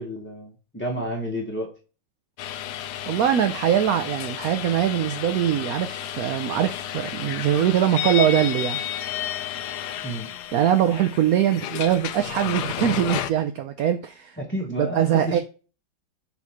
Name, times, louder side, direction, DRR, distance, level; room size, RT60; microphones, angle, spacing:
voice 1, 0.0-1.7 10.0-10.3 14.4-15.4, equal, 10° left, 0.7 m, -30 dB
sound 1, 2.4-13.3, left 10 dB, 70° left, 1.0 m, -32 dB
voice 2, 3.1-8.8 10.5-14.4 14.8-15.4, right 10 dB, 70° right, 0.8 m, -22 dB
7.3 x 3.1 x 5.6 m
omnidirectional pair, 2.0 m